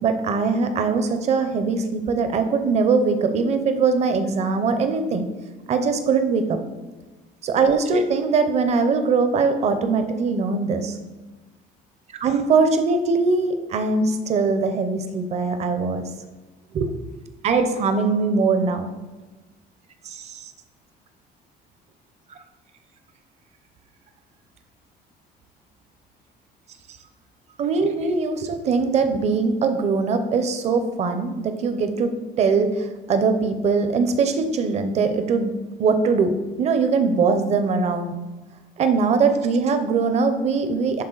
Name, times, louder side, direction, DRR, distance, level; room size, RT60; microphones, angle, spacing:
voice 1, 0.0-5.2 5.7-6.6 7.4-11.0 12.1-16.1 16.7-16.9 17.4-18.9 20.0-20.5 27.6-35.5 35.8-38.1 38.8-41.0, right 4 dB, 35° right, 8 dB, 0.7 m, -21 dB
10.5 x 4.1 x 3.9 m, 1.2 s
cardioid pair, 175°, 19 cm